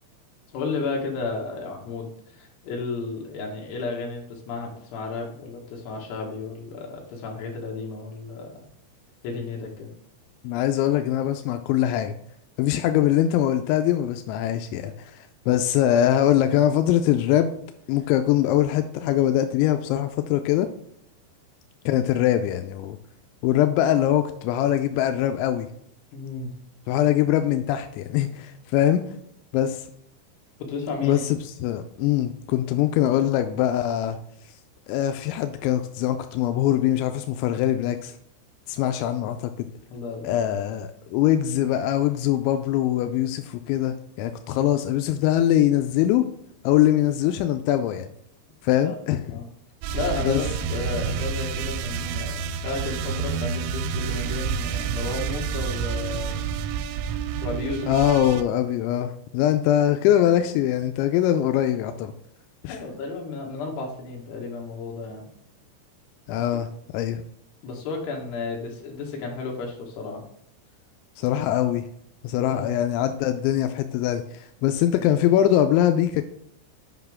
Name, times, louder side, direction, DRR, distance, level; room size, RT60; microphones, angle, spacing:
voice 1, 0.5-8.5 9.2-9.9 26.1-26.5 30.6-31.2 39.9-40.4 48.8-48.9 49.3-49.5 49.9-56.3 57.4-57.9 62.7-65.3 66.4-66.6 67.6-70.2 72.3-72.7, left 3 dB, 65° left, 0 dB, 3.2 m, -33 dB
voice 2, 10.4-12.2 12.6-17.5 17.9-20.7 21.9-23.0 23.4-25.7 26.9-29.1 29.5-29.9 31.0-34.2 34.9-38.1 38.7-39.7 40.2-46.3 46.6-48.1 48.6-49.2 50.2-50.4 57.9-62.1 62.6-62.8 66.3-67.2 71.2-71.8 72.2-76.2, left 12 dB, 85° left, 8 dB, 2.6 m, -22 dB
sound 1, 49.8-58.4, right 6 dB, 90° right, 3.2 m, -29 dB
8.0 x 5.8 x 3.5 m, 0.70 s
omnidirectional pair, 5.8 m